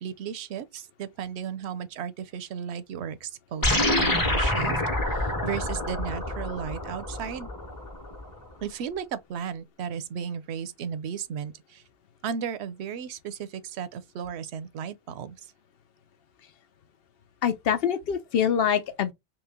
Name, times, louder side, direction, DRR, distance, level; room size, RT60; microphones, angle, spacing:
voice 1, 0.0-4.7 5.1-7.5 8.6-11.8 12.2-15.4, right 7 dB, 90° right, 0.8 m, -35 dB
sound 1, 3.6-8.3, left 1 dB, 20° left, 0.9 m, -27 dB
voice 2, 17.4-19.1, left 8 dB, 70° left, 0.8 m, -25 dB
3.1 x 3.0 x 3.5 m
omnidirectional pair, 1.1 m